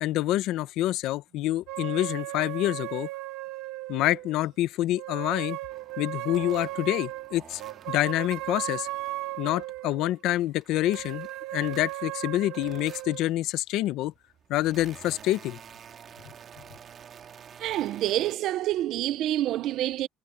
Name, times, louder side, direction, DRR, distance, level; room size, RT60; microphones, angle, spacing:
voice 1, 0.0-3.1 3.9-5.6 6.0-7.6 7.9-8.9 9.4-14.1 14.5-15.6, left 15 dB, 60° left, 0.7 m, -27 dB
sound 1, 1.7-4.4 5.0-10.1 10.7-13.2, right 17 dB, 70° right, 1.3 m, -36 dB
sound 2, 5.7-9.8 10.2-12.2 12.5-13.4 14.1-18.4, right 8 dB, 30° right, 2.1 m, -50 dB
voice 2, 17.6-20.1, right 13 dB, 50° right, 0.7 m, -27 dB
cardioid pair, 170°, 0 cm